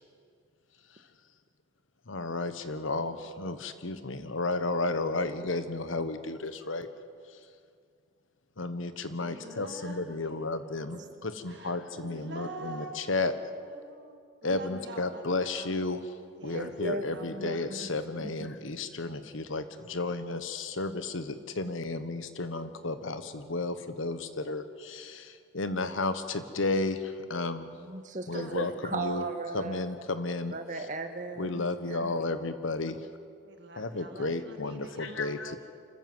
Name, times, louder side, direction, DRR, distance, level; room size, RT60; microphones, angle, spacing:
voice 1, 2.1-6.9 7.3-7.4 8.6-13.3 14.4-16.1 16.4-19.6 19.9-27.8 28.3-29.3 29.5-30.5 31.4-33.0 33.8-35.6, left 3 dB, 75° left, 11 dB, 1.2 m, -33 dB
voice 2, 9.1-15.7 16.4-16.7 17.1-17.6 28.3-29.3 33.6-35.6, right 2 dB, 55° right, 3 dB, 2.2 m, -46 dB
voice 3, 16.5-17.9 27.8-29.8 30.5-32.2, right 2 dB, 40° right, 7 dB, 1.5 m, -37 dB
26.0 x 14.5 x 7.9 m, 2.2 s
head